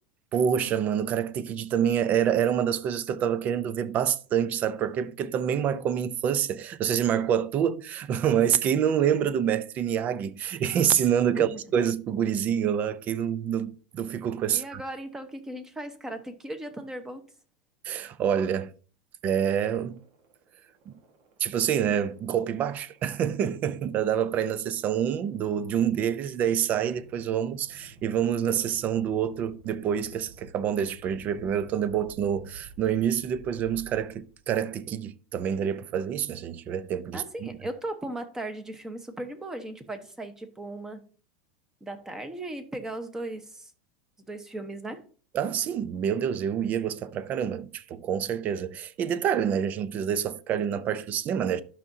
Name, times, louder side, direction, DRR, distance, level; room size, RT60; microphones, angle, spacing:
voice 1, 0.3-14.8 17.8-18.7 19.2-20.0 20.9-21.0 21.4-37.5 45.3-51.6, right 9 dB, 35° right, 0.5 m, -27 dB
voice 2, 14.5-17.2 37.1-41.0 41.8-43.7 44.3-45.0, right 1 dB, 10° right, 1.1 m, -37 dB
sound 1, 19.6-34.6, right 3 dB, 55° right, 1.5 m, -53 dB
12.0 x 5.7 x 2.7 m
supercardioid pair, 135°, 5 cm